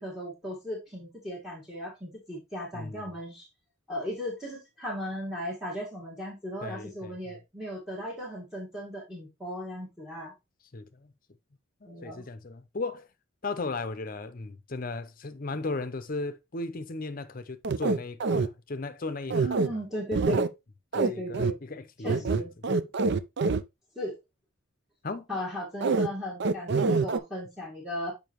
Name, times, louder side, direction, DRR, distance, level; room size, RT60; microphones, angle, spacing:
voice 1, 0.0-3.5 3.9-10.3 11.8-12.3 19.4-20.5 21.0-21.6 22.0-22.5 23.9-24.2 25.3-28.1, equal, 5° right, 1.7 m, -36 dB
voice 2, 6.6-7.1 10.7-11.1 11.8-13.1 13.4-19.5 20.9-22.5 25.0-25.3, left 3 dB, 45° left, 0.7 m, -36 dB
sound 1, 17.6-18.5 19.3-19.7 20.1-20.5 20.9-21.1 21.3-21.5 22.1-23.6 25.8-26.1 26.4-27.2, right 4 dB, 55° right, 0.5 m, -25 dB
7.1 x 5.3 x 3.0 m
head